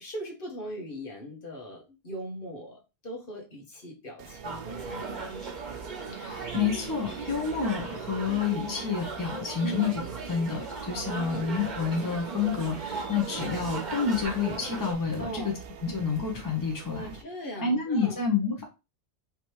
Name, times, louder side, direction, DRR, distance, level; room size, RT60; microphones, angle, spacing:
voice 1, 0.0-5.3 9.6-9.9 10.9-11.5 15.2-15.6 16.9-18.2, right 1 dB, 55° left, 1.4 m, -39 dB
sound 1, 4.2-17.2, right 7 dB, 70° right, 0.8 m, -44 dB
sound 2, 4.4-14.9, right 4 dB, 45° right, 1.1 m, -37 dB
voice 2, 6.1-9.9 10.3-15.5 15.8-17.1 17.6-18.6, left 5 dB, 20° left, 1.0 m, -29 dB
5.1 x 2.9 x 3.1 m
omnidirectional pair, 1.1 m